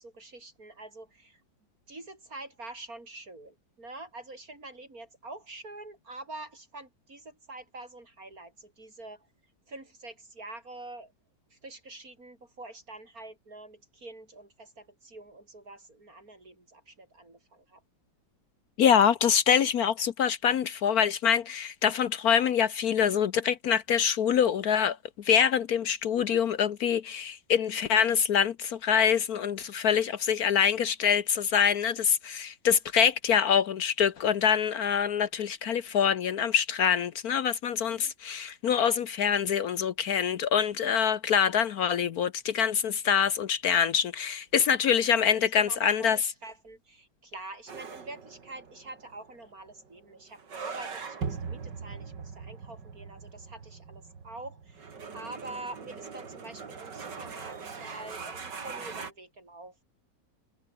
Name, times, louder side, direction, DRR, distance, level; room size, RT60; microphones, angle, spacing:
voice 1, 0.0-1.4 1.9-9.3 9.7-11.1 11.5-17.8 37.8-38.1 44.6-44.7 45.6-59.8, right 2 dB, 55° right, 6.3 m, -46 dB
voice 2, 18.8-46.2, left 8 dB, 65° left, 1.3 m, -25 dB
sound 1, 47.7-59.1, right 5 dB, 80° right, 3.1 m, -41 dB
omnidirectional pair, 1.9 m